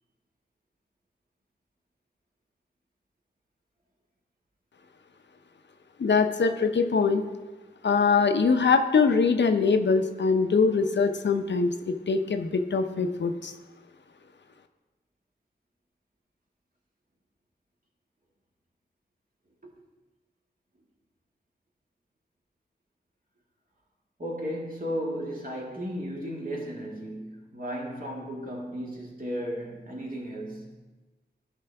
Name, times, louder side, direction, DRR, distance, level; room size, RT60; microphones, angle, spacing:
voice 1, 6.0-7.2 7.8-13.5, left 5 dB, 75° left, 0.6 m, -23 dB
voice 2, 24.2-30.8, equal, 50° right, 1.9 m, -35 dB
11.5 x 4.9 x 3.4 m
cardioid pair, 40°, 18 cm